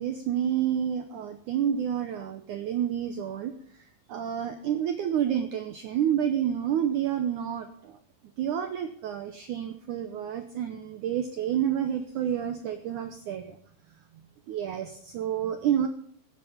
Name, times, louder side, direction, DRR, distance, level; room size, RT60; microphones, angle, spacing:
voice 1, 0.0-3.5 4.1-8.0 8.4-13.6 14.5-15.9, right 9 dB, 80° right, 8 dB, 1.8 m, -29 dB
15.0 x 9.1 x 5.2 m, 0.64 s
omnidirectional pair, 4.9 m